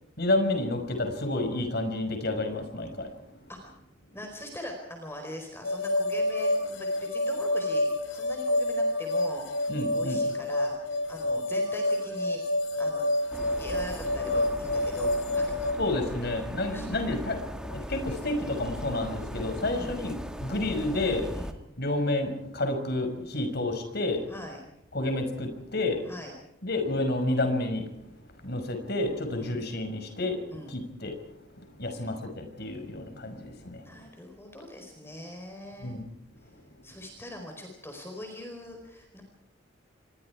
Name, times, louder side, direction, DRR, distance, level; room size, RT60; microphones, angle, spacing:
voice 1, 0.2-3.1 9.7-10.2 15.8-21.3 21.8-24.3 24.9-26.0 26.6-27.9 28.4-31.2 31.5-34.0 35.8-36.1, left 2 dB, 55° left, 6 dB, 5.9 m, -30 dB
voice 2, 3.5-3.8 4.1-12.4 12.8-13.1 13.6-15.7 16.7-16.9 19.7-20.0 21.3-21.6 24.3-24.6 26.1-26.3 29.3-29.5 30.5-30.8 32.0-32.1 33.8-35.9 36.8-39.2, left 1 dB, 15° left, 2 dB, 4.6 m, -42 dB
sound 1, 5.6-15.7, left 1 dB, 80° left, 4.4 m, -28 dB
sound 2, 13.3-21.5, equal, 5° right, 2.0 m, -39 dB
29.5 x 23.5 x 4.9 m, 0.80 s
head